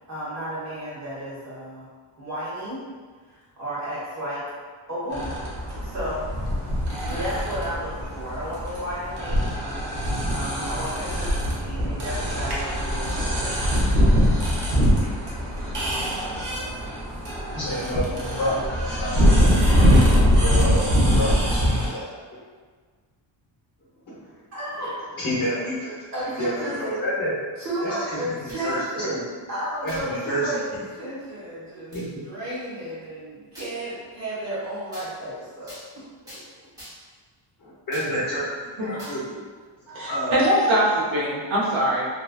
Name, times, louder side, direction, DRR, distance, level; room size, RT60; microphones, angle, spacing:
voice 1, 0.1-1.9 2.2-2.8 3.3-4.4 4.9-5.4 5.8-6.3 7.1-9.5 9.8-10.0 10.2-13.8 24.5-25.0 26.1-27.0 27.6-36.4, equal, 35° right, -10 dB, 1.1 m, -33 dB
sound 1, 5.1-21.9, equal, 55° right, 0.7 m, -22 dB
voice 2, 17.5-18.5 19.0-19.1 20.4-22.2 24.1-24.2 24.8-24.9 25.2-25.9 26.4-27.3 27.8-27.9 28.4-29.0 29.8-30.8 31.9-32.1 37.6-39.4 40.1-40.5, equal, 45° left, -10 dB, 0.8 m, -29 dB
sound 2, 28.5-28.8 29.9-30.1 30.8-30.9 31.9-32.1 33.6-33.8 34.9-35.1 35.7-35.9 36.3-36.4 36.8-37.1 37.9-38.1 39.0-39.2, equal, 10° right, 0.6 m, -43 dB
voice 3, 38.8-39.1 39.9-42.1, right 1 dB, 80° right, -7 dB, 1.0 m, -23 dB
2.8 x 2.2 x 2.3 m, 1.5 s
wide cardioid pair, 160°, 48 cm